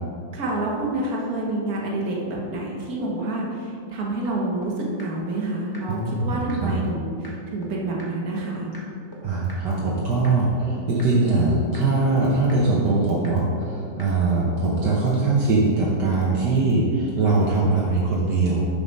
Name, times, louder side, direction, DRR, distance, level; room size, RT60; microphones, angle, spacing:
voice 1, 0.3-8.7, right 2 dB, 55° right, -3 dB, 1.7 m, -28 dB
sound 1, 4.2-4.3 4.6-4.7 5.0-5.1 5.4-5.5 5.7-5.8 6.1-6.2 6.5-6.6 6.9-7.0 7.2-7.3 7.6-7.7 8.0-8.1 8.4-8.5 8.7-8.8 9.1-9.2 9.5-9.6 9.9-10.0 10.2-10.3 10.6-10.7 11.0-11.1 11.4-11.5 11.7-11.8 12.1-12.2 12.5-12.6 12.9-13.0 13.2-13.3 13.6-13.7 14.0-14.1, left 1 dB, 15° left, 1.0 m, -42 dB
voice 2, 5.9-6.8 9.2-18.7, right 3 dB, 70° right, -4 dB, 1.6 m, -21 dB
7.3 x 5.7 x 5.3 m, 2.4 s
omnidirectional pair, 2.0 m